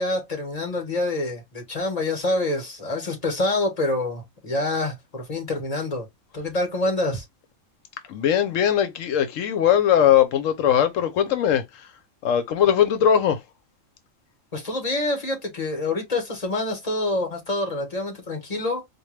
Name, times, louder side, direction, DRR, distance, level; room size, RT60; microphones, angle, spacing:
voice 1, 0.0-6.1 6.3-7.2 14.5-18.9, left 2 dB, 30° left, 1.4 m, -26 dB
voice 2, 8.1-11.9 12.2-13.4, left 9 dB, 80° left, 1.0 m, -20 dB
4.4 x 2.3 x 3.0 m
omnidirectional pair, 1.3 m